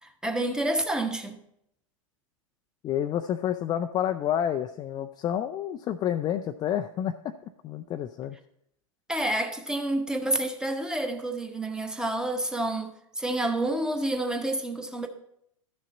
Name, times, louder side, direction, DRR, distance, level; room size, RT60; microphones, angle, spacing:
voice 1, 0.0-1.4 9.1-15.1, right 1 dB, 5° right, 0.9 m, -29 dB
voice 2, 2.8-7.3 7.6-8.4, left 10 dB, 25° left, 0.4 m, -29 dB
12.0 x 6.4 x 4.1 m
figure-of-eight pair, 95°, 18 cm